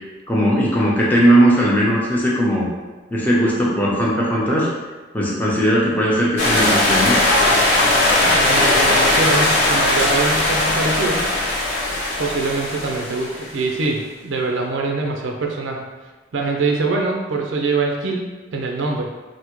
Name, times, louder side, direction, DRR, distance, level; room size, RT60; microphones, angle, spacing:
voice 1, 0.3-2.7 3.1-4.7 5.1-7.2, equal, 10° left, -5 dB, 0.6 m, -18 dB
sound 1, 6.4-13.6, left 1 dB, 60° left, 0.7 m, -18 dB
voice 2, 8.2-11.3 12.2-15.9 16.3-19.1, right 3 dB, 85° right, 1 dB, 0.4 m, -23 dB
3.4 x 2.1 x 3.0 m, 1.3 s
head